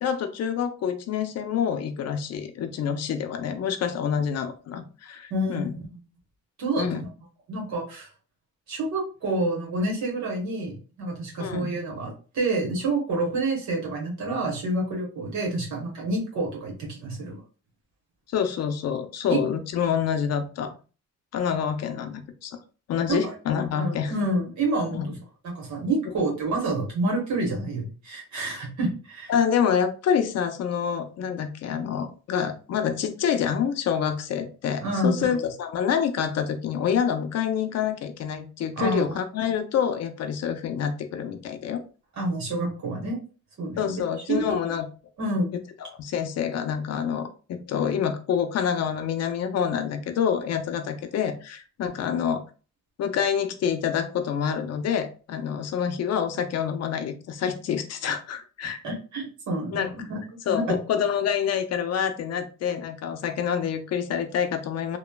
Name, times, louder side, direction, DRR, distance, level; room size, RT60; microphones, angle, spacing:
voice 1, 0.0-5.7 6.8-7.0 11.4-11.7 18.3-20.7 21.3-22.6 22.9-24.1 24.9-25.1 26.0-26.1 29.3-41.8 43.8-44.9 45.5-52.4 53.0-58.8 59.7-59.9 60.5-65.0, left 8 dB, 55° left, 8 dB, 0.5 m, -27 dB
voice 2, 5.3-5.9 6.6-7.1 7.5-8.1 8.7-17.4 19.3-19.4 23.1-23.3 23.8-25.2 25.4-29.3 34.8-35.2 38.8-39.2 42.1-43.2 43.6-44.0 44.3-44.6 45.2-45.6 58.8-60.2 60.5-60.6, right 2 dB, 65° right, -1 dB, 1.1 m, -28 dB
3.0 x 2.1 x 2.2 m, 0.36 s
cardioid pair, 90°, 30 cm